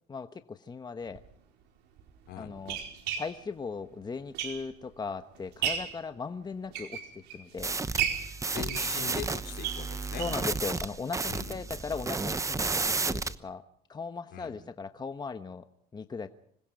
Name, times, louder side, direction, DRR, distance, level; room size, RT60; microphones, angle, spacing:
voice 1, 0.1-1.2 2.4-2.8 3.2-7.0 7.3-7.8 10.2-13.6 13.9-15.7 15.9-16.3, left 5 dB, 25° left, 9 dB, 1.1 m, -38 dB
sound 1, 1.1-1.2 2.0-4.9 5.3-6.0 6.5-7.5 7.9-10.5 10.8-10.9 11.2-11.3 11.7-11.8, right 9 dB, 90° right, 4.6 m, -35 dB
sound 2, 7.6-13.3, right 3 dB, 20° right, 1.0 m, -32 dB
voice 2, 8.5-10.6 11.2-11.6 14.3-14.5, left 9 dB, 75° left, 5 dB, 4.8 m, -41 dB
26.0 x 21.0 x 5.2 m, 0.70 s
cardioid pair, 110°, 17 cm